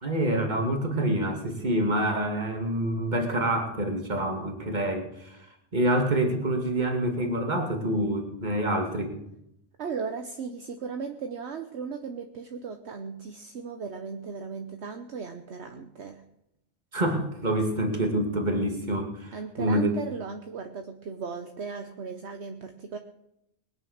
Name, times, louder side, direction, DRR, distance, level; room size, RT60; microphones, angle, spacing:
voice 1, 0.0-5.4 5.7-9.1 16.9-19.9, right 1 dB, 40° right, 3 dB, 2.4 m, -27 dB
voice 2, 9.8-16.2 19.3-23.0, right 5 dB, 65° right, 6 dB, 1.2 m, -36 dB
20.5 x 9.4 x 6.4 m, 0.81 s
omnidirectional pair, 1.2 m